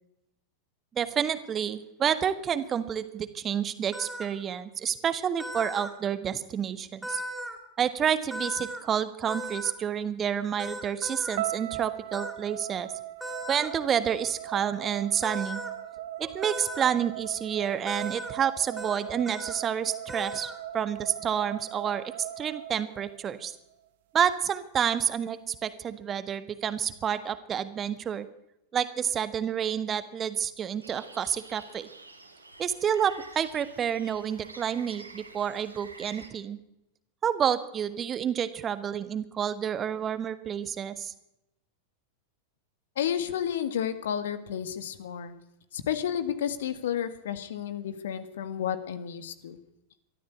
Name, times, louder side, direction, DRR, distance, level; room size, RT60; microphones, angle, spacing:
voice 1, 0.9-7.2 7.8-12.9 13.5-15.6 16.2-22.0 22.4-23.5 24.1-28.3 28.7-31.9 32.6-36.6 37.2-41.1, right 8 dB, 25° right, 12 dB, 1.5 m, -29 dB
sound 1, 3.9-4.3 5.4-5.9 7.0-7.6 8.3-8.8 9.3-9.7 10.6-11.4 12.1-12.3 13.2-13.7 15.2-15.7 16.4-16.9 17.9-18.3 18.8-19.0 19.2-19.6 20.1-20.6, equal, ahead, 4.1 m, -37 dB
sound 2, 11.4-23.5, right 12 dB, 55° right, 1.4 m, -39 dB
sound 3, 30.8-36.3, right 3 dB, 85° right, 3.2 m, -49 dB
voice 2, 43.0-45.3 45.7-49.6, left 9 dB, 60° left, 11 dB, 1.9 m, -31 dB
23.0 x 14.0 x 8.4 m, 0.86 s
figure-of-eight pair, 90°, 0 cm